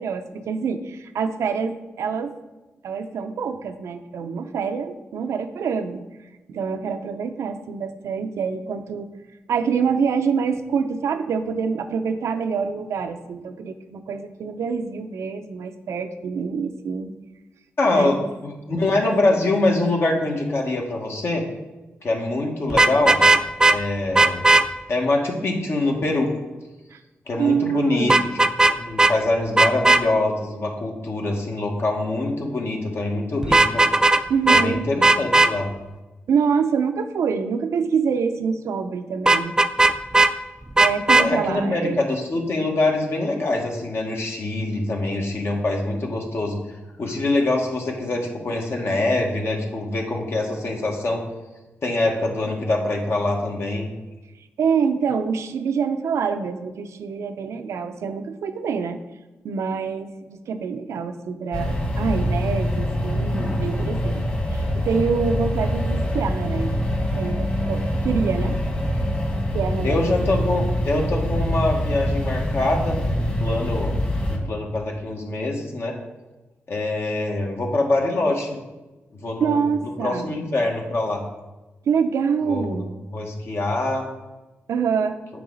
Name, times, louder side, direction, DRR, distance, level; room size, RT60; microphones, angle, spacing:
voice 1, 0.0-2.3 2.8-6.0 6.5-9.1 9.5-17.1 17.9-18.3 26.9-27.0 27.4-28.2 34.3-34.9 36.3-39.6 40.8-42.0 54.6-59.0 59.4-66.9 67.2-68.6 69.0-69.1 69.5-70.0 70.3-70.4 79.4-80.3 81.9-82.9 84.7-85.2, right 6 dB, 85° right, 9 dB, 0.5 m, -26 dB
voice 2, 17.8-21.4 22.0-23.2 23.7-24.4 24.9-26.3 27.3-33.8 34.5-35.7 41.2-46.6 47.0-51.2 51.8-53.9 69.8-73.9 74.3-76.0 76.7-78.6 79.2-79.6 80.0-81.2 82.5-82.8 83.1-84.1, left 2 dB, 60° left, 1 dB, 1.4 m, -24 dB
Vehicle horn car horn honking, 22.7-23.8 24.1-24.6 28.1-28.7 29.0-29.1 29.6-30.0 33.4-34.2 34.5-34.6 35.0-35.5 39.3-40.3 40.8-41.3, right 2 dB, 15° right, 0.4 m, -15 dB
sound 1, 61.5-74.4, equal, 30° left, 1.9 m, -24 dB
7.8 x 4.8 x 3.9 m, 1.1 s
cardioid pair, 65°, 5 cm